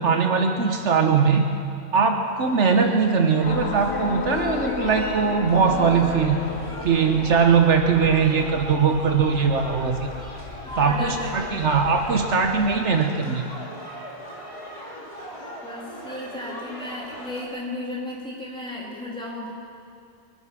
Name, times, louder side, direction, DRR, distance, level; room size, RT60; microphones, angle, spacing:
voice 1, 0.0-1.5 1.9-6.4 6.8-10.1 10.8-13.5, right 5 dB, 70° right, 4 dB, 1.2 m, -20 dB
sound 1, 2.2-17.5, equal, 25° left, 2.9 m, -39 dB
sound 2, 3.4-12.9, left 6 dB, 55° left, 0.9 m, -34 dB
voice 2, 10.6-11.6 15.6-19.5, left 1 dB, 5° left, -6 dB, 3.4 m, -34 dB
23.5 x 10.0 x 6.2 m, 2.4 s
omnidirectional pair, 1.3 m